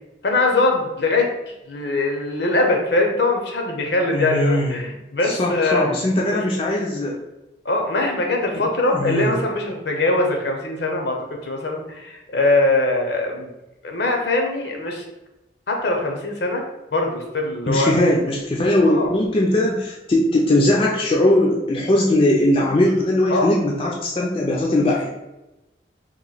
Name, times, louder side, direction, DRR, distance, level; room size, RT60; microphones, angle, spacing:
voice 1, 0.2-1.3 1.7-5.9 6.3-6.4 7.6-13.5 13.8-15.0 15.7-16.6 16.9-17.9 18.8-19.1 23.3-23.5, left 2 dB, 65° left, 2 dB, 0.7 m, -22 dB
voice 2, 4.1-4.8 5.2-7.2 8.5-9.4 17.7-25.1, left 1 dB, 30° left, -2 dB, 0.4 m, -20 dB
3.0 x 2.5 x 3.9 m, 0.98 s
head